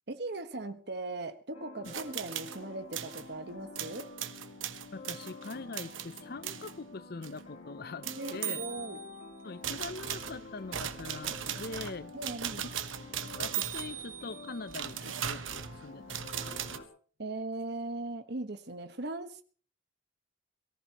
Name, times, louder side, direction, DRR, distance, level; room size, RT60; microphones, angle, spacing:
voice 1, 0.1-4.1 8.1-9.0 12.1-12.7 17.2-19.4, right 2 dB, 55° right, 1.4 m, -39 dB
sound 1, 1.5-16.9, left 3 dB, 85° left, 3.4 m, -49 dB
sound 2, 1.8-2.6 2.9-3.3 3.7-6.7 7.2-7.4 8.0-9.2 9.6-16.8, right 9 dB, 80° right, 1.2 m, -38 dB
voice 2, 4.9-8.7 9.4-12.1 12.6-12.7 13.4-16.8, left 3 dB, 50° left, 0.6 m, -43 dB
23.0 x 14.5 x 3.0 m
head